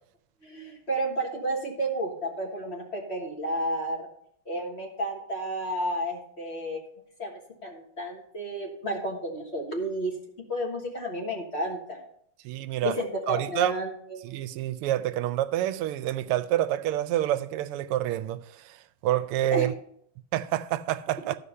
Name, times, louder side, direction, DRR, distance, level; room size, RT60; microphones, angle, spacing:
voice 1, 0.4-4.1 4.5-6.8 7.2-10.1 10.5-12.0 12.8-14.3 19.5-19.6, right 1 dB, 35° left, 1.5 m, -31 dB
voice 2, 12.4-13.7 14.2-19.7 20.3-21.4, right 13 dB, 90° right, 1.5 m, -28 dB
13.0 x 5.0 x 5.5 m
omnidirectional pair, 2.4 m